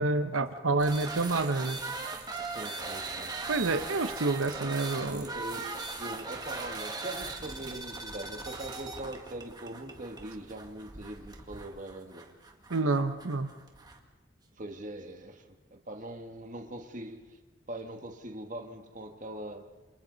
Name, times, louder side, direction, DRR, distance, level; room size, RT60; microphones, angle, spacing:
voice 1, 0.0-1.8 3.5-5.2 12.7-13.5, right 3 dB, 90° right, 8 dB, 1.0 m, -28 dB
sound 1, 0.8-14.0, right 3 dB, 20° right, 1.8 m, -39 dB
voice 2, 2.4-3.6 4.9-12.3 14.6-17.4 17.7-19.7, right 1 dB, 40° right, 5 dB, 1.7 m, -42 dB
28.0 x 27.5 x 4.0 m, 1.2 s
head